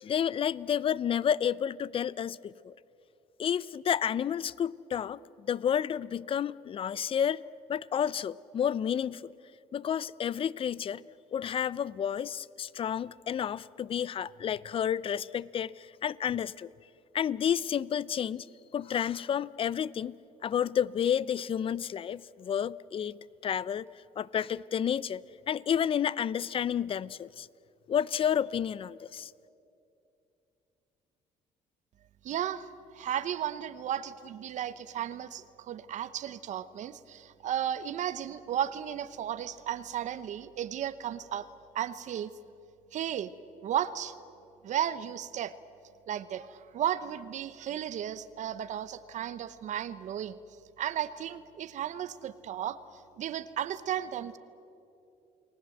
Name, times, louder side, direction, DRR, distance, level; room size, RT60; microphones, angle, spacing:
voice 1, 0.0-2.7 3.4-7.4 7.7-9.3 9.7-11.0 11.3-16.7 17.1-18.5 18.7-20.2 20.4-23.2 23.4-23.9 24.2-27.5 27.9-29.3, left 9 dB, 40° left, 0.5 m, -30 dB
voice 2, 32.2-32.7 32.9-41.5 41.7-42.3 42.9-43.3 43.6-44.1 44.6-45.5 46.1-50.4 50.8-52.8 53.2-54.4, right 10 dB, 60° right, 0.9 m, -34 dB
30.0 x 19.5 x 7.8 m
cardioid pair, 100°, 14 cm